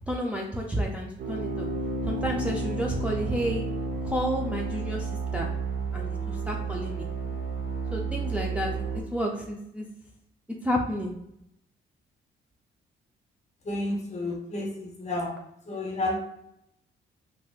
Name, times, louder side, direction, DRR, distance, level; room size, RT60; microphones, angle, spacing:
voice 1, 0.1-1.7 2.0-3.6 4.0-5.5 5.9-7.1 7.9-9.9 10.6-11.1, equal, 5° right, -1 dB, 0.4 m, -31 dB
sound 1, 1.2-9.0, right 3 dB, 50° right, 0.7 m, -31 dB
voice 2, 13.6-15.3 15.7-16.2, left 1 dB, 35° left, 1 dB, 0.8 m, -31 dB
3.2 x 2.9 x 2.3 m, 0.78 s
cardioid pair, 90°, 20 cm